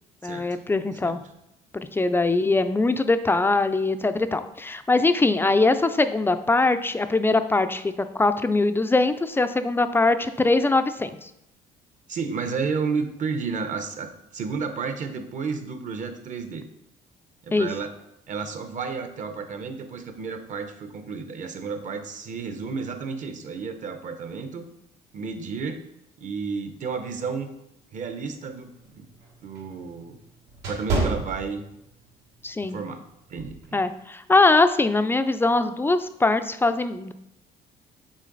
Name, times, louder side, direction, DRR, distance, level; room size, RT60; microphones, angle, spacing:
voice 1, 0.2-1.2 1.7-11.3 17.5-17.7 32.4-32.8 33.7-37.1, left 3 dB, 15° left, 10 dB, 0.3 m, -22 dB
voice 2, 12.1-16.6 17.4-17.9 18.3-24.6 25.1-25.8 26.2-27.5 27.9-29.1 29.4-30.2 30.7-31.6 32.7-33.0 33.3-33.8, right 5 dB, 50° right, 8 dB, 0.8 m, -32 dB
sound 1, 28.4-32.1 32.5-32.8 33.4-33.6, right 2 dB, 90° right, 1.6 m, -29 dB
6.3 x 3.9 x 3.9 m, 0.81 s
cardioid pair, 110°, 17 cm